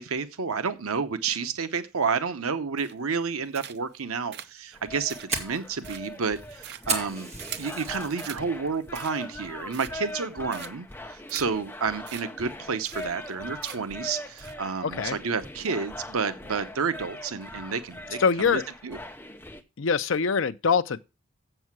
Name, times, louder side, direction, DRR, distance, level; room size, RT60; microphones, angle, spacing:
voice 1, 0.0-7.3 7.6-18.2 18.5-19.0, right 5 dB, 90° right, 0.8 m, -30 dB
sound 1, 2.8-3.2 3.5-4.0 4.3-7.8 8.2-8.4 8.8-9.4 9.7-10.2 10.5-10.9 11.3-11.5 11.7-11.8 12.1-12.2 12.5-12.6 12.8-13.3 13.6-14.0 14.4-14.5, right 10 dB, 50° right, 0.6 m, -42 dB
sound 2, 4.7-19.6, left 1 dB, 10° left, 0.7 m, -41 dB
Fire, 4.7-8.3 8.7-9.1 9.4-9.6 10.1-10.4, right 4 dB, 30° right, 1.9 m, -34 dB
voice 2, 14.8-15.2 18.2-18.6 19.8-21.0, left 5 dB, 65° left, 0.6 m, -24 dB
7.8 x 7.4 x 6.0 m
head